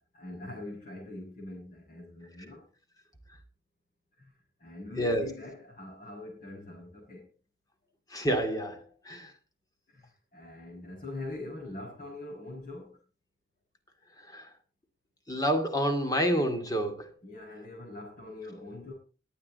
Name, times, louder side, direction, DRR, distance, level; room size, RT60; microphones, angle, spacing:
voice 1, 0.1-2.6 4.2-4.3 4.6-7.3 9.9-13.0 17.2-18.9, left 2 dB, 45° left, 6.9 m, -43 dB
voice 2, 5.0-5.3 8.1-9.3 14.3-14.5 15.3-17.1, equal, 20° left, 2.4 m, -28 dB
21.5 x 8.9 x 4.2 m
head